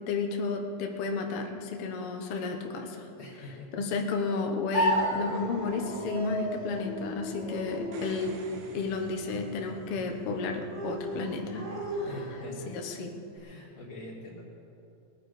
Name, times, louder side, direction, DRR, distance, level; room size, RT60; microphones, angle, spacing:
voice 1, 0.1-3.1 3.7-8.4 8.7-12.1 12.7-13.1, left 4 dB, 70° left, 3 dB, 1.3 m, -32 dB
voice 2, 3.2-3.7 12.0-12.8 13.3-14.4, left 2 dB, 55° left, -4 dB, 2.4 m, -44 dB
sound 1, 4.7-12.7, equal, 20° right, 1.4 m, -34 dB
sound 2, 7.7-10.3 13.4-13.5, right 4 dB, 70° right, 2.5 m, -49 dB
20.5 x 10.5 x 4.9 m, 2.8 s
omnidirectional pair, 4.3 m